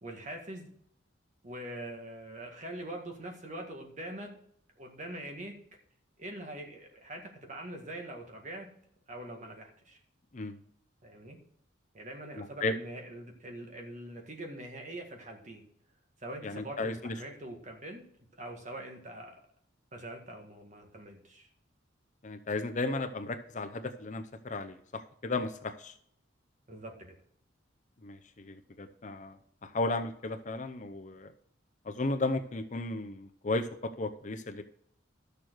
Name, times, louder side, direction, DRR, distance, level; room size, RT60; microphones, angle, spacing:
voice 1, 0.0-0.7 1.4-4.3 4.8-5.6 6.2-8.7 9.1-10.0 11.0-11.4 11.9-15.6 16.2-18.0 18.4-19.4 19.9-21.5 26.7-27.2, right 1 dB, 40° right, 2 dB, 1.8 m, -43 dB
voice 2, 12.3-12.7 16.4-17.1 22.2-25.9 28.0-31.3 31.8-34.6, left 2 dB, 40° left, 7 dB, 0.6 m, -35 dB
12.5 x 6.8 x 4.6 m, 0.67 s
head